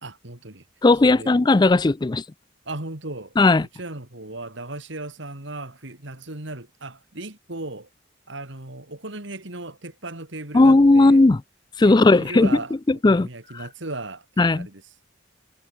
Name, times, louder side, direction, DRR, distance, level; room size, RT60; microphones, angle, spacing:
voice 1, 0.0-0.6 1.0-1.3 2.7-3.3 3.7-7.9 8.3-11.2 11.8-12.8 13.1-14.8, right 2 dB, 60° right, 2.8 m, -36 dB
voice 2, 0.8-2.2 3.4-3.7 10.5-11.4 11.8-12.6 12.9-13.3 13.5-13.6 14.4-14.7, left 2 dB, 20° left, 0.4 m, -16 dB
head